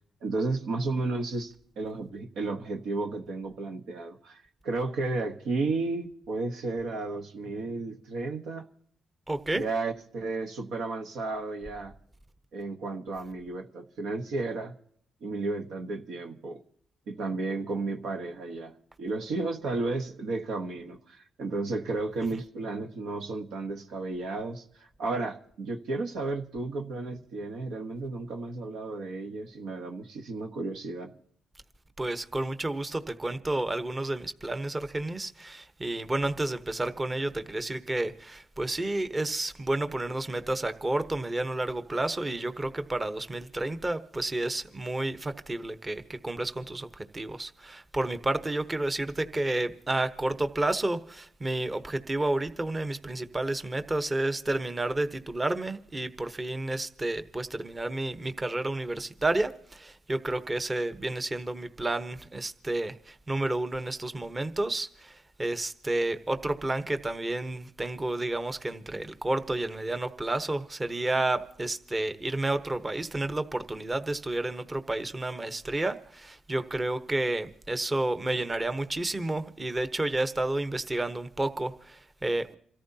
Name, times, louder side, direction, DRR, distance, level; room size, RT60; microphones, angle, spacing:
voice 1, 0.2-8.7 9.5-11.9 12.5-14.7 15.2-16.6 17.1-31.1, right 3 dB, 80° right, 4 dB, 1.2 m, -33 dB
voice 2, 9.3-9.6 22.3-22.4 32.0-82.6, right 2 dB, 25° right, 10 dB, 1.0 m, -31 dB
28.0 x 14.0 x 2.8 m, 0.65 s
cardioid pair, 75°, 0 cm